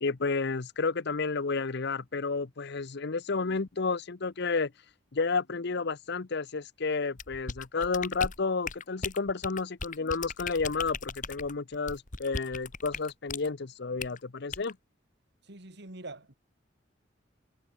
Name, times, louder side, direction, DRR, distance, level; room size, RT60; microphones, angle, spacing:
voice 1, 0.0-4.7 5.1-14.8, left 4 dB, 60° left, 0.8 m, -31 dB
sound 1, 7.2-13.5 14.0-14.2 14.5-14.7, left 5 dB, 45° left, 1.9 m, -38 dB
voice 2, 15.4-16.3, right 2 dB, 60° right, 3.3 m, -44 dB
head